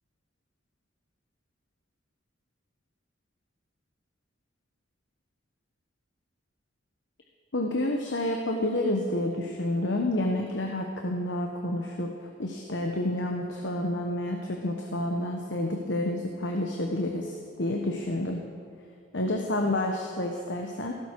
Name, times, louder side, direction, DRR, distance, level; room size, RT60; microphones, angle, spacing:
voice 1, 7.5-12.1 12.4-18.4 19.1-20.9, left 1 dB, 70° left, 2 dB, 1.2 m, -29 dB
16.5 x 13.5 x 4.8 m, 2.4 s
head